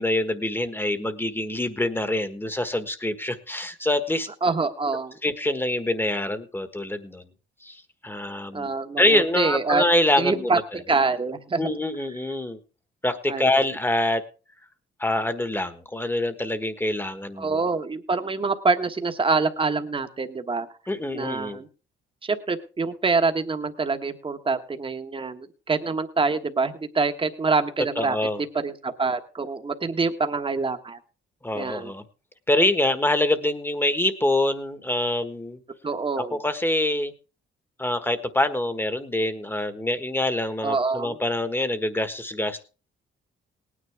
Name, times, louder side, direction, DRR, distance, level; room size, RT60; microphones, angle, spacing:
voice 1, 0.0-4.3 5.2-7.3 7.6-10.6 11.6-12.6 13.0-14.2 15.0-17.6 20.9-21.6 28.0-28.4 31.4-32.0 32.5-35.6 36.2-37.1 37.8-42.6, left 1 dB, 10° left, 10 dB, 1.4 m, -25 dB
voice 2, 4.4-5.2 8.5-9.8 10.2-11.7 13.3-13.5 17.4-20.7 21.1-21.7 22.2-28.2 28.6-31.0 31.5-31.9 35.8-36.4 40.6-41.2, right 4 dB, 25° right, 7 dB, 1.3 m, -25 dB
18.5 x 9.8 x 3.5 m, 0.34 s
cardioid pair, 90°, 20 cm